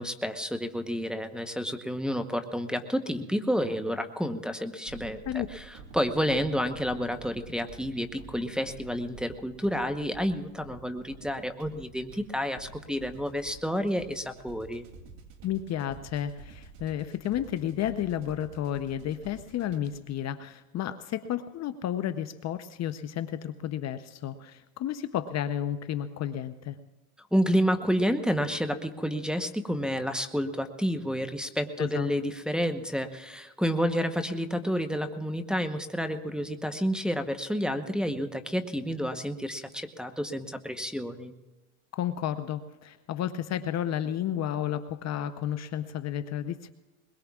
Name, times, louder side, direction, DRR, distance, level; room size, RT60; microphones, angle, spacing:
voice 1, 0.0-5.7 5.9-14.8 27.3-41.3, equal, ahead, 5 dB, 0.9 m, -30 dB
sound 1, 4.9-20.1, right 4 dB, 65° right, 2.9 m, -49 dB
voice 2, 15.4-26.8 31.8-32.1 41.9-46.7, left 10 dB, 35° left, 11 dB, 0.7 m, -32 dB
22.0 x 21.5 x 2.4 m, 1.1 s
supercardioid pair, 110°, 44 cm